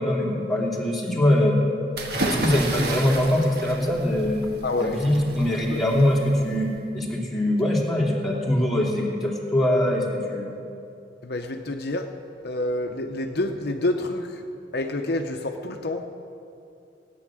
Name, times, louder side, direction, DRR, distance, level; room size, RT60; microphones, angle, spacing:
voice 1, 0.0-1.5 2.2-4.4 4.8-10.6, left 1 dB, ahead, -5 dB, 2.7 m, -23 dB
sound 1, 1.9-6.8, right 2 dB, 60° right, 1.5 m, -32 dB
voice 2, 4.6-5.1 5.6-5.8 11.2-12.1 12.4-14.4 14.7-16.0, left 2 dB, 60° left, 4 dB, 0.8 m, -28 dB
17.0 x 9.7 x 7.6 m, 2.6 s
head